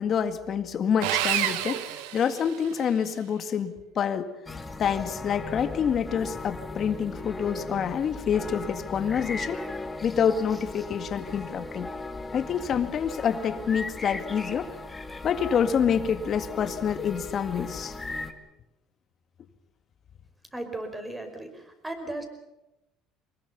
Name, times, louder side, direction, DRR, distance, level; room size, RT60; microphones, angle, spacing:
voice 1, 0.0-4.3 4.8-9.6 10.0-11.9 12.3-14.7 15.2-17.9, left 7 dB, 45° left, 9 dB, 2.0 m, -27 dB
Sawing, 1.0-2.9, right 13 dB, 90° right, 1.3 m, -29 dB
sound 1, 4.5-18.3, left 3 dB, 15° left, 2.2 m, -37 dB
voice 2, 20.5-22.2, right 2 dB, 10° right, 6 dB, 5.2 m, -36 dB
24.0 x 21.0 x 7.0 m, 0.91 s
cardioid pair, 105°, 0 cm